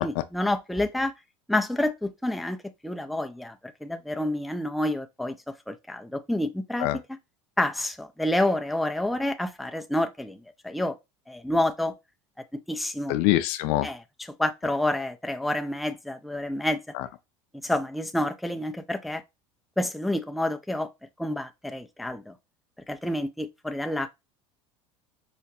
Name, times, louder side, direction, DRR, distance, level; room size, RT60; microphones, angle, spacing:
voice 1, 0.0-1.1 1.5-2.6 2.8-3.6 3.8-5.4 5.7-7.2 7.6-11.0 11.3-11.9 12.7-13.2 13.8-16.8 17.6-19.2 19.8-20.9 21.2-22.3 22.9-24.1, left 1 dB, ahead, 0.3 m, -28 dB
voice 2, 13.1-13.9 17.0-17.1, left 16 dB, 65° left, 0.4 m, -24 dB
4.8 x 2.1 x 2.8 m
hypercardioid pair, 90°, 15 cm